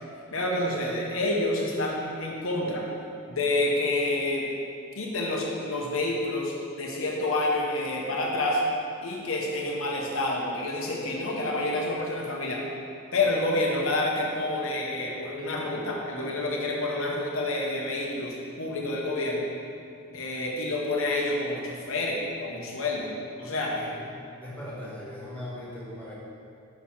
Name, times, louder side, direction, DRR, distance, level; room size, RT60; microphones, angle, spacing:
voice 1, 0.3-2.8 3.3-4.5 5.0-8.6 9.0-12.6 13.1-19.5 20.1-23.1 23.4-23.7, left 2 dB, 70° left, -2 dB, 1.1 m, -28 dB
voice 2, 23.7-26.1, left 1 dB, 5° left, -8 dB, 1.6 m, -39 dB
5.9 x 4.7 x 5.6 m, 2.5 s
head